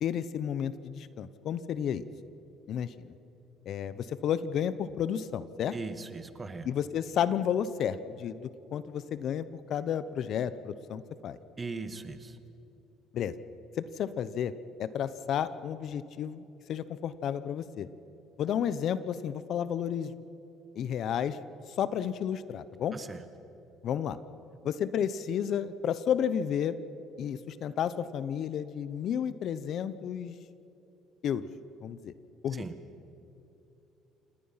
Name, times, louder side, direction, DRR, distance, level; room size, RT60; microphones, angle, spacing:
voice 1, 0.0-2.0 2.7-3.1 3.7-5.7 6.6-11.4 13.1-13.3 13.8-14.5 14.8-17.9 18.4-20.1 20.8-21.4 21.8-23.0 23.8-24.2 24.6-26.8 27.2-30.3 31.2-31.5 31.8-32.1 32.4-32.6, left 9 dB, 55° left, 15 dB, 0.8 m, -32 dB
voice 2, 5.7-6.7 11.6-12.4 22.9-23.2 32.5-32.7, right 4 dB, 20° right, 11 dB, 1.4 m, -39 dB
27.5 x 19.0 x 5.7 m, 2.9 s
cardioid pair, 115°, 0 cm